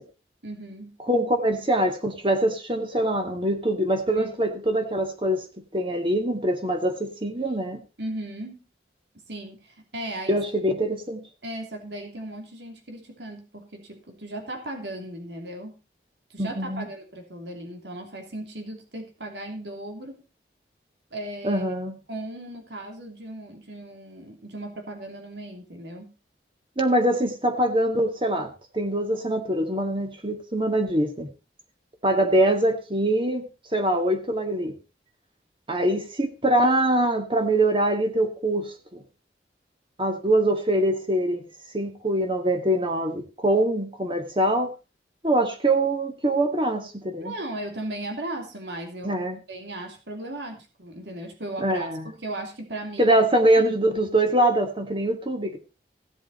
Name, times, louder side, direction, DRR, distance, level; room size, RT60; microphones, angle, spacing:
voice 1, 0.4-1.0 4.1-4.5 8.0-8.6 9.3-10.4 11.4-15.8 16.3-20.2 21.1-21.6 22.1-26.1 47.2-49.2 49.5-51.9 52.1-53.1 53.5-53.6, right 1 dB, 85° right, 3.0 m, -37 dB
voice 2, 1.1-5.5 5.7-7.8 10.3-11.2 16.4-16.9 21.4-22.0 26.8-31.3 32.0-34.8 35.7-39.0 40.0-41.5 41.7-44.7 45.2-47.3 49.0-49.4 51.6-52.1 53.0-55.6, right 1 dB, 30° right, 2.0 m, -23 dB
16.5 x 7.8 x 4.2 m
head